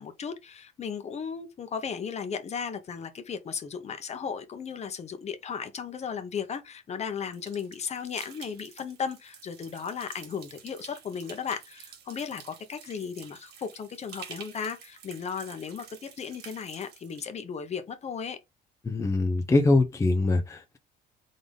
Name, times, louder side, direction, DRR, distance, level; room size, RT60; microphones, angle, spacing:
voice 1, 0.0-18.4, left 6 dB, 40° left, 1.0 m, -35 dB
sound 1, 7.3-17.3, right 8 dB, 75° right, 1.4 m, -49 dB
voice 2, 18.8-20.8, left 2 dB, 15° left, 0.7 m, -23 dB
3.9 x 3.5 x 3.7 m
cardioid pair, 110°, 17 cm